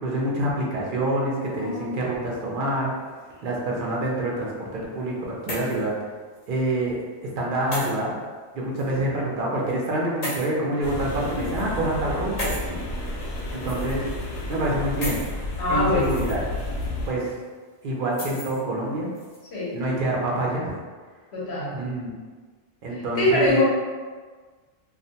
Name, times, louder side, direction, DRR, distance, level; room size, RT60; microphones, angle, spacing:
voice 1, 0.0-2.9 3.4-5.9 6.5-7.0 7.4-8.1 8.5-12.8 13.5-14.0 14.5-15.2 15.7-16.4 17.1-17.4 17.8-19.1 19.7-20.8 21.7-22.1 22.8-23.6, right 1 dB, 55° right, -3 dB, 0.6 m, -26 dB
sound 1, 1.4-2.1 3.0-3.7 4.9-5.9 6.4-6.5 7.7-7.9 8.8-8.9 10.2-10.5 11.3-11.6 12.4-12.7 13.6-14.2 15.0-15.3 15.9-16.3 16.7-16.9 18.1-18.6 19.2-19.4, left 1 dB, 40° left, 0.7 m, -34 dB
sound 2, 10.8-17.1, left 1 dB, 85° left, 0.9 m, -31 dB
voice 2, 15.6-16.2 19.5-19.8 21.3-21.7 22.9-23.6, left 2 dB, 65° left, -6 dB, 1.1 m, -23 dB
2.4 x 2.1 x 2.7 m, 1.4 s
omnidirectional pair, 1.2 m